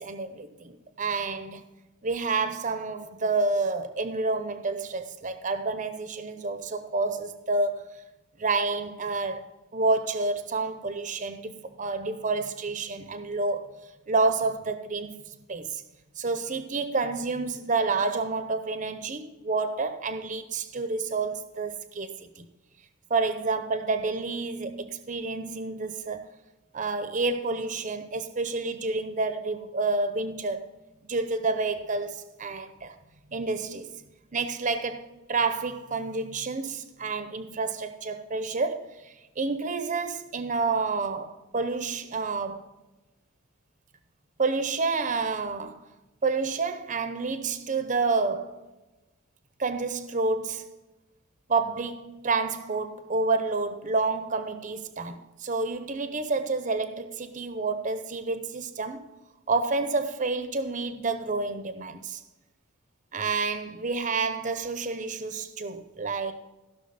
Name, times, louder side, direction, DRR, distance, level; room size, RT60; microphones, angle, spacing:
voice 1, 0.0-1.6 2.0-7.8 8.4-9.5 9.7-11.5 11.8-13.7 14.1-15.2 15.5-15.8 16.2-22.5 23.1-26.3 26.7-30.6 31.0-32.9 33.3-33.9 34.3-42.7 44.4-45.8 46.2-48.6 49.6-50.7 51.5-59.0 59.5-62.2 63.1-66.3, right 3 dB, 35° right, 0.7 m, -29 dB
15.5 x 6.2 x 4.0 m
head